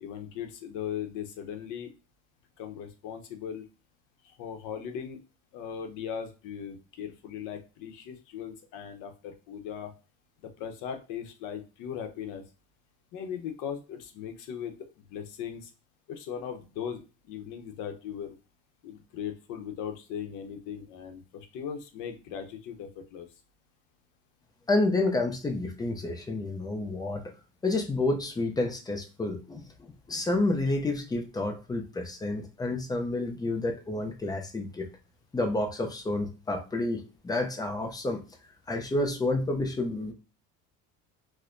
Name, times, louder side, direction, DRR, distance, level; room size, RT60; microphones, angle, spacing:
voice 1, 0.0-1.9 2.6-3.6 4.4-5.2 5.5-9.9 10.6-12.4 13.1-14.7 15.1-15.7 16.1-17.0 17.3-18.3 18.8-23.3, left 8 dB, 70° left, 6 dB, 0.8 m, -38 dB
voice 2, 24.7-27.2 27.6-29.6 30.1-34.9 35.3-38.2 38.7-40.1, left 2 dB, 10° left, 4 dB, 0.5 m, -29 dB
4.3 x 2.1 x 2.5 m, 0.33 s
cardioid pair, 135°, 32 cm